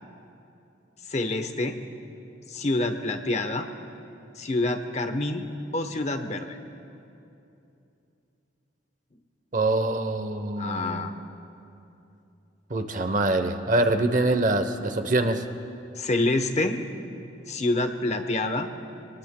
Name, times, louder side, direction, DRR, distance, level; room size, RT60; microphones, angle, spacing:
voice 1, 1.1-1.8 2.5-3.7 4.4-5.5 5.7-6.6 10.6-11.1 16.0-16.8 17.5-18.7, left 2 dB, 35° left, 7 dB, 0.9 m, -27 dB
voice 2, 9.5-11.1 12.7-15.5, right 2 dB, 40° right, 8 dB, 0.8 m, -24 dB
26.5 x 20.5 x 2.2 m, 2.8 s
head